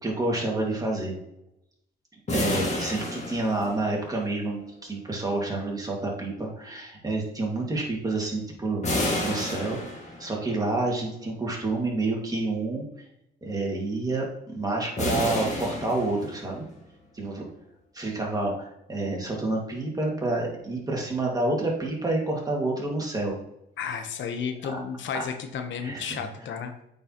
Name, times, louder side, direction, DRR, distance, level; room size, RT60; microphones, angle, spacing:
voice 1, 0.0-1.2 2.3-8.8 9.2-9.8 10.2-12.9 13.4-16.7 17.1-17.4 17.9-23.4 24.7-24.8 25.8-26.0, right 2 dB, 20° right, -2 dB, 2.0 m, -28 dB
sound 1, 2.3-4.2 8.8-10.5 15.0-16.6, left 1 dB, 35° left, 2.0 m, -30 dB
voice 2, 23.8-26.7, left 6 dB, 70° left, 6 dB, 1.0 m, -32 dB
8.5 x 4.5 x 3.0 m, 0.82 s
cardioid pair, 90°, 20 cm